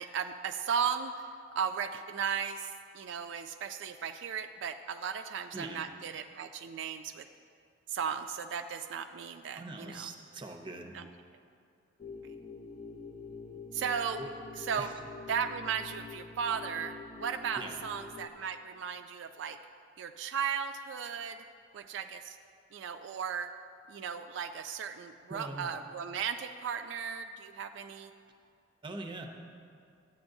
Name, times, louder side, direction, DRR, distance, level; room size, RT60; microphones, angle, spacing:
voice 1, 0.0-7.3 7.9-10.1 10.9-11.1 13.7-14.2 14.6-14.9 15.3-19.6 20.0-21.4 21.7-22.4 22.7-23.5 23.9-28.1, right 7 dB, 70° right, 6 dB, 0.3 m, -36 dB
voice 2, 5.5-5.9 9.6-11.0 14.2-14.3 14.8-14.9 17.6-17.8 25.3-25.7 28.8-29.3, right 2 dB, 25° right, 4 dB, 0.6 m, -42 dB
sound 1, 12.0-18.3, left 4 dB, 30° left, 0.4 m, -46 dB
12.5 x 8.6 x 2.6 m, 2.4 s
head